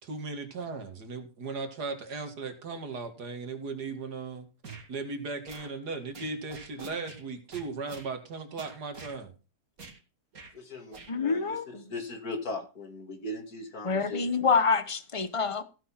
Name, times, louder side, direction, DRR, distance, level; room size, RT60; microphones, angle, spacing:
voice 1, 0.0-4.5 4.9-9.3, right 4 dB, 80° right, 2.6 m, -37 dB
sound 1, 4.6-4.9 5.5-5.7 6.1-7.2 7.5-8.1 8.6-9.2 9.8-10.0 10.3-10.5 10.9-11.1, right 4 dB, 60° right, 2.7 m, -46 dB
voice 2, 10.5-14.5, left 2 dB, 65° left, 2.9 m, -39 dB
voice 3, 11.1-11.9 13.8-15.6, left 5 dB, 25° left, 0.9 m, -27 dB
16.0 x 6.3 x 5.8 m
omnidirectional pair, 1.7 m